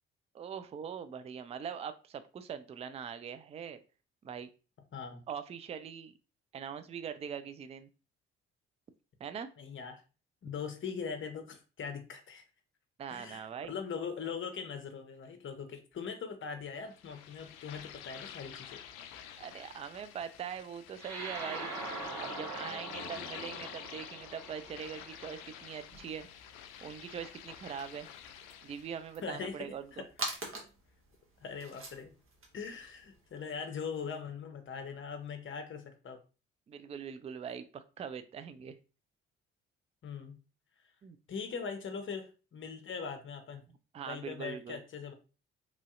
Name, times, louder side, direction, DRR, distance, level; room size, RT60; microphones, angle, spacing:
voice 1, 0.3-3.8 4.2-4.5 5.3-6.1 6.5-7.9 9.2-9.5 13.0-13.7 19.4-21.7 22.2-26.3 26.8-28.1 28.6-30.0 36.7-38.8 41.0-41.2 43.9-44.8, right 7 dB, 20° right, 11 dB, 0.3 m, -42 dB
voice 2, 9.6-10.0 10.4-12.4 13.1-18.8 29.2-30.1 31.4-32.1 32.5-36.2 40.0-40.3 41.3-43.6 44.1-45.1, left 6 dB, 35° left, 6 dB, 0.8 m, -41 dB
sound 1, 16.9-29.1, left 9 dB, 70° left, 0.4 m, -48 dB
sound 2, 21.0-25.7, right 3 dB, 65° right, 1.2 m, -43 dB
sound 3, 25.9-33.5, right 2 dB, 40° right, 1.1 m, -47 dB
3.0 x 2.6 x 2.4 m, 0.34 s
hypercardioid pair, 45°, 33 cm